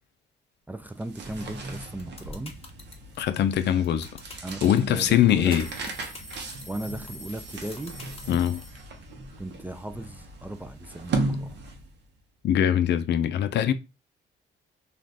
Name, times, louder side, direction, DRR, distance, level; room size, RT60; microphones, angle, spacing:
voice 1, 0.7-2.5 4.4-4.6 4.9-5.6 6.7-8.0 9.4-11.6, right 1 dB, 10° right, 0.3 m, -37 dB
sound 1, 0.9-12.1, right 2 dB, 60° right, 0.8 m, -36 dB
sound 2, 1.8-8.8, left 4 dB, 30° left, 0.7 m, -45 dB
voice 2, 3.2-4.1 4.6-5.7 8.3-8.6 12.4-13.7, left 10 dB, 60° left, 0.4 m, -22 dB
sound 3, 4.3-4.4 5.4-9.2, right 1 dB, 25° right, 0.8 m, -45 dB
2.5 x 2.4 x 3.3 m
cardioid pair, 90°, 20 cm